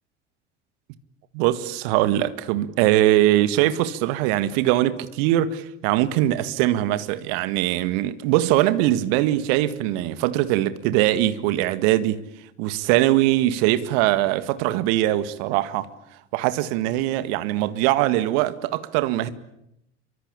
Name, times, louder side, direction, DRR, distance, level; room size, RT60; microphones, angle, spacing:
voice 1, 1.3-12.2 12.6-15.9 16.3-19.3, right 14 dB, 55° right, 1.9 m, -21 dB
27.5 x 24.5 x 8.7 m
figure-of-eight pair, 70°, 34 cm